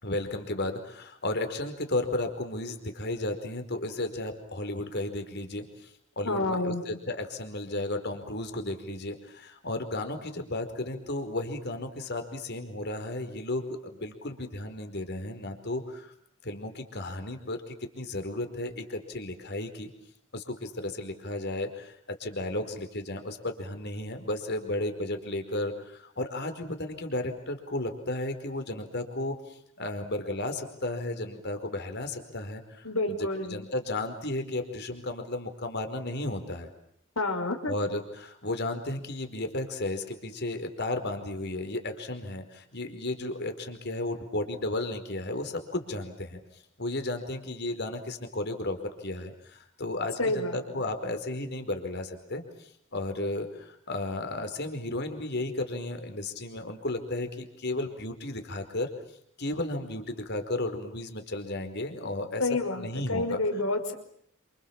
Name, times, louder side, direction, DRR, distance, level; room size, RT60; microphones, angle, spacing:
voice 1, 0.0-5.9 6.2-16.1 16.4-19.9 20.3-33.2 33.5-36.7 37.7-46.4 46.8-58.9 59.4-62.5 62.7-63.4, left 2 dB, 50° left, 7 dB, 4.8 m, -34 dB
voice 2, 6.2-6.8 32.8-33.7 37.2-37.7 50.2-50.6 62.4-63.9, left 2 dB, 80° left, 6 dB, 5.5 m, -29 dB
29.0 x 27.5 x 7.4 m, 0.67 s
head